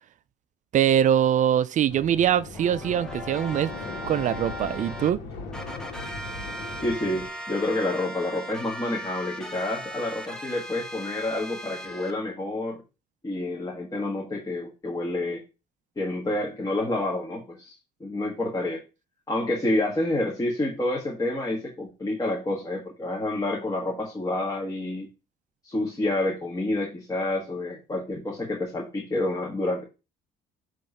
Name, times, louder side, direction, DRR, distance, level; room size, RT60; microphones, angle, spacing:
voice 1, 0.7-3.7 4.0-5.2, right 10 dB, 50° right, 0.4 m, -23 dB
sound 1, 1.9-7.3, left 3 dB, 90° left, 1.7 m, -39 dB
sound 2, 2.5-5.1 5.5-12.1, equal, 5° left, 1.2 m, -38 dB
voice 2, 6.8-12.8 13.2-15.4 15.9-17.7 18.0-18.8 19.3-25.1 25.6-29.8, left 2 dB, 20° left, 1.6 m, -28 dB
7.5 x 3.2 x 5.4 m
cardioid pair, 110°, 17 cm